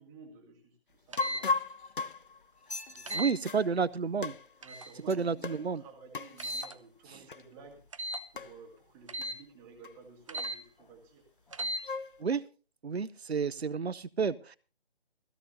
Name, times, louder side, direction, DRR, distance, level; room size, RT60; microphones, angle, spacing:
voice 1, 0.0-1.5 3.0-3.2 4.6-7.8 8.3-11.3, right 4 dB, 10° right, 2 dB, 2.1 m, -53 dB
sound 1, 1.1-1.4 3.1-3.3 4.6-4.9 6.4-6.7 7.9-8.2 9.1-9.4 10.3-10.6 11.5-11.8, right 1 dB, 30° right, 0.8 m, -36 dB
sound 2, 1.2-3.7 4.2-4.9 5.4-5.7 6.1-6.4 7.3-7.5 7.7-7.8 8.4-8.6 9.2-9.3 9.8-9.9 10.4-10.9 11.5-12.2, left 4 dB, 55° left, 0.7 m, -36 dB
sound 3, 1.4-2.1 2.6-3.2 5.1-5.4 6.3-6.7 7.4-7.5, left 3 dB, 80° left, 2.0 m, -46 dB
voice 2, 3.1-4.3 5.1-5.8 12.2-12.4 12.8-14.6, right 5 dB, 75° right, 18 dB, 0.8 m, -30 dB
17.0 x 16.0 x 2.8 m, 0.35 s
figure-of-eight pair, 155°, 32 cm